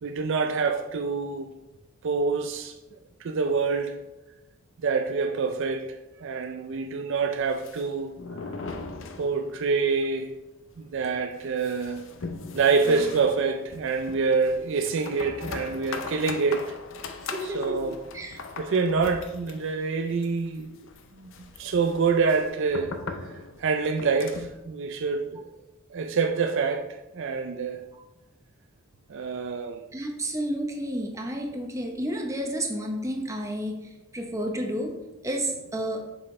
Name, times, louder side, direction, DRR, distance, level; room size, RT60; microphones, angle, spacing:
voice 1, 0.0-1.5 2.0-2.8 3.2-4.0 4.8-8.2 9.2-10.3 10.8-12.1 12.5-16.8 17.4-18.0 18.6-20.9 21.2-21.3 21.6-23.0 23.2-25.5 25.9-27.8 29.1-29.8, right 4 dB, 60° right, 0.4 m, -26 dB
sound 1, 7.4-9.8 10.0-10.1 10.4-10.5 11.0-24.6, left 4 dB, 60° left, 0.6 m, -40 dB
voice 2, 17.3-18.4 29.9-33.8 34.1-35.0 35.2-36.0, equal, 15° right, 0.8 m, -31 dB
7.5 x 6.1 x 3.2 m
head